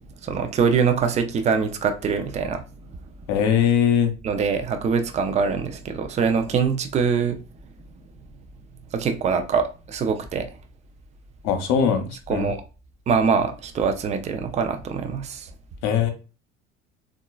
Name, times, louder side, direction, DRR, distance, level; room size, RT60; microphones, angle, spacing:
voice 1, 0.2-2.6 4.2-7.4 8.9-10.5 12.3-12.6 13.1-15.5, right 6 dB, 20° right, 0.4 m, -23 dB
voice 2, 3.3-4.1 11.4-12.5 15.8-16.1, left 8 dB, 50° left, 0.8 m, -21 dB
3.7 x 2.3 x 2.2 m
figure-of-eight pair, 65°, 34 cm